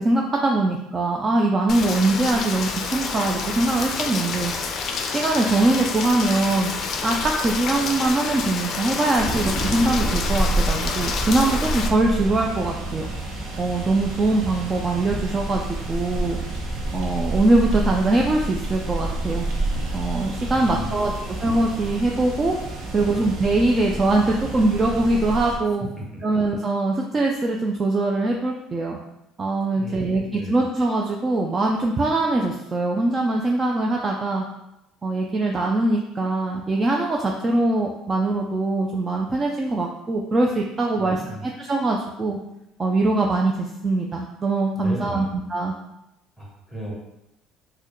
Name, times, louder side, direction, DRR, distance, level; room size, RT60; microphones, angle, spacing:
voice 1, 0.0-4.5 5.1-6.7 7.0-13.1 13.6-16.4 16.9-19.5 19.9-21.1 21.4-22.6 22.9-25.9 26.2-29.0 29.4-34.5 35.0-42.4 42.8-45.7, right 2 dB, 25° right, 0 dB, 0.3 m, -22 dB
Rain, 1.7-11.9, left 4 dB, 45° left, 0.4 m, -28 dB
sound 1, 9.1-25.6, right 1 dB, 55° right, 0.9 m, -29 dB
voice 2, 20.5-21.1 23.0-23.2 29.7-30.5 40.9-41.4 44.7-45.3 46.4-46.9, right 1 dB, ahead, -3 dB, 1.1 m, -35 dB
4.4 x 2.1 x 3.0 m, 0.89 s
cardioid pair, 130°, 0 cm